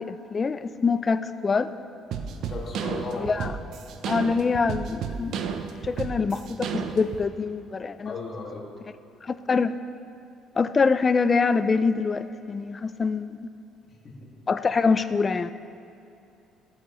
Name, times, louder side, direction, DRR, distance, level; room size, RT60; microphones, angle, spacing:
voice 1, 0.0-1.7 3.2-3.5 4.1-8.1 9.2-9.7 10.6-13.5 14.5-15.5, left 4 dB, 30° left, 12 dB, 0.4 m, -25 dB
sound 1, 2.1-7.2, right 7 dB, 65° right, 0.6 m, -32 dB
voice 2, 2.5-3.4 8.0-8.6 14.0-14.2, left 3 dB, 45° left, -2 dB, 2.0 m, -35 dB
15.5 x 8.1 x 3.1 m, 2.7 s
cardioid pair, 115°, 0 cm